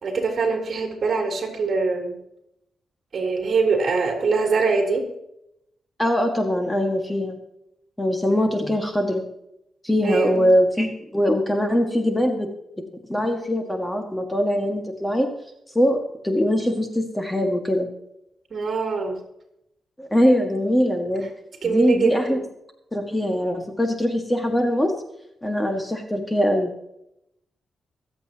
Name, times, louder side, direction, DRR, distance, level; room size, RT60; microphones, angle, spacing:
voice 1, 0.0-2.2 3.1-5.1 8.3-8.5 10.0-10.4 18.5-19.2 21.6-22.4, right 4 dB, 50° right, 2 dB, 3.5 m, -23 dB
voice 2, 6.0-7.4 8.0-9.2 9.8-12.5 13.1-15.3 15.7-17.9 20.0-21.3 21.6-22.4 22.9-24.9 25.4-26.7, equal, 10° left, 4 dB, 1.8 m, -22 dB
24.0 x 8.3 x 3.0 m, 0.80 s
cardioid pair, 105°, 0 cm